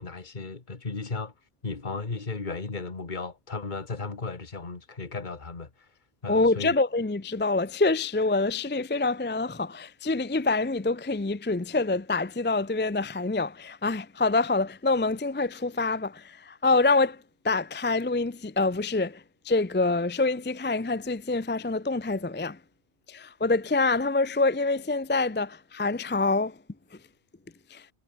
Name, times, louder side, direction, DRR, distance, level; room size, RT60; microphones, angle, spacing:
voice 1, 0.0-1.3 1.6-5.7 6.2-6.8, left 4 dB, 50° left, 2.1 m, -35 dB
voice 2, 6.3-17.2 17.4-22.6 23.1-26.5 27.7-27.8, left 3 dB, 15° left, 0.5 m, -26 dB
omnidirectional pair, 1.0 m